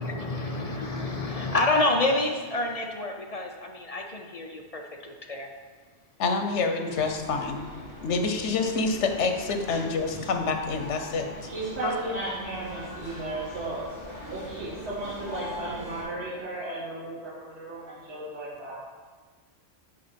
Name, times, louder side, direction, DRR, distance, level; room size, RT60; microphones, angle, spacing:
voice 1, 0.0-5.5, left 2 dB, 40° left, 3 dB, 0.6 m, -28 dB
voice 2, 6.2-7.6 8.0-11.3 11.8-11.9, left 4 dB, 85° left, 5 dB, 1.1 m, -27 dB
sound 1, 6.9-16.0, left 1 dB, 25° left, 2.7 m, -42 dB
voice 3, 11.5-13.8 14.2-18.8, right 2 dB, 70° right, -8 dB, 1.9 m, -35 dB
9.8 x 4.1 x 5.1 m, 1.5 s
omnidirectional pair, 1.2 m